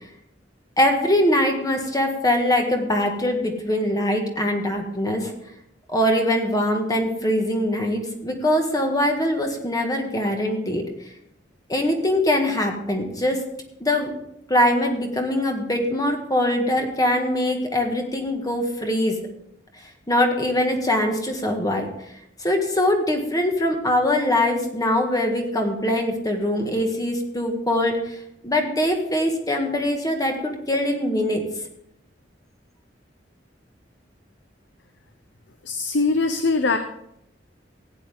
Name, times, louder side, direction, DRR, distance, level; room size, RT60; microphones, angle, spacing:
voice 1, 0.8-5.3 5.9-10.8 11.7-13.4 13.8-14.1 14.5-19.2 20.1-21.9 22.4-28.2 28.4-31.4, left 1 dB, 20° left, 3 dB, 1.7 m, -22 dB
voice 2, 35.7-36.8, left 3 dB, 70° left, 8 dB, 0.8 m, -21 dB
15.5 x 9.5 x 3.6 m, 0.77 s
head